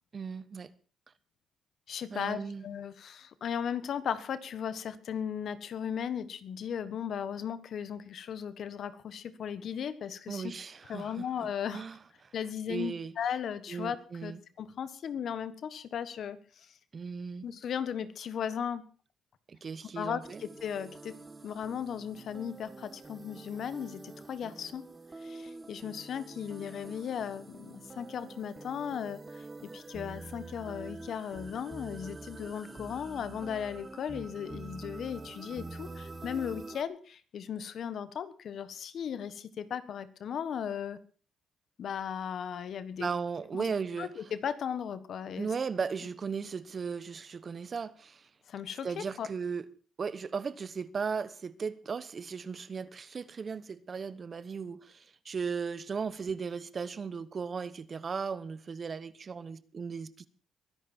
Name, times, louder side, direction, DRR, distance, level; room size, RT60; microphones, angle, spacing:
voice 1, 0.1-0.7 2.1-2.6 10.3-11.2 11.7-12.0 12.2-12.3 12.7-13.1 13.7-14.4 16.9-17.4 19.5-20.4 43.0-44.1 45.4-48.3 48.8-49.6 50.0-60.3, right 5 dB, 40° right, 1.1 m, -36 dB
voice 2, 1.9-10.5 10.9-11.8 12.3-14.0 14.2-14.3 14.6-16.7 17.4-18.8 19.9-21.1 21.4-24.8 25.2-41.0 41.8-43.1 43.5-43.7 44.0-45.5 48.5-49.3, left 8 dB, 60° left, 1.4 m, -36 dB
sound 1, 20.2-36.8, right 3 dB, 25° right, 1.4 m, -46 dB
22.5 x 10.5 x 4.5 m
cardioid pair, 90°, 0 cm